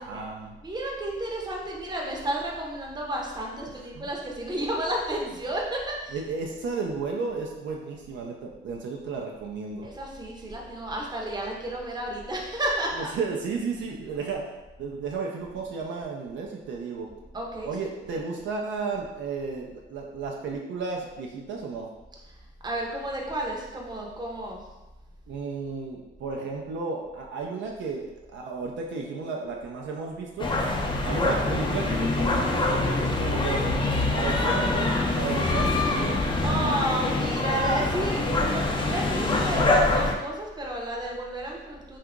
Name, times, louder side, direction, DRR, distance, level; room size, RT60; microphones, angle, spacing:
voice 1, 0.0-0.6 4.0-4.1 6.1-9.9 13.0-17.1 17.6-21.9 25.3-30.5 31.0-33.7 34.1-36.5, right 4 dB, 70° right, -1 dB, 0.5 m, -33 dB
voice 2, 0.6-6.2 9.8-13.1 17.3-17.7 22.6-24.6 36.4-42.0, right 1 dB, 20° right, -1 dB, 0.7 m, -32 dB
sound 1, 30.4-40.1, left 2 dB, 25° left, 0.4 m, -25 dB
2.8 x 2.4 x 3.5 m, 1.1 s
cardioid pair, 90°, 20 cm